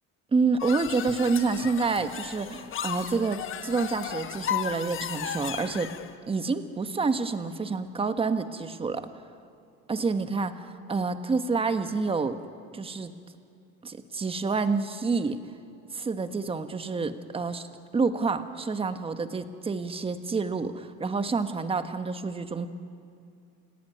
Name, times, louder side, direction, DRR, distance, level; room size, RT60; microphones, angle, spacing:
voice 1, 0.3-5.9 6.3-9.0 9.9-12.4 12.7-13.1 13.8-15.4 15.9-17.7 17.9-22.7, right 4 dB, 20° right, 9 dB, 1.4 m, -28 dB
sound 1, 0.6-6.1, left 9 dB, 45° left, 1.5 m, -35 dB
29.0 x 17.0 x 9.3 m, 2.4 s
cardioid pair, 120°, 30 cm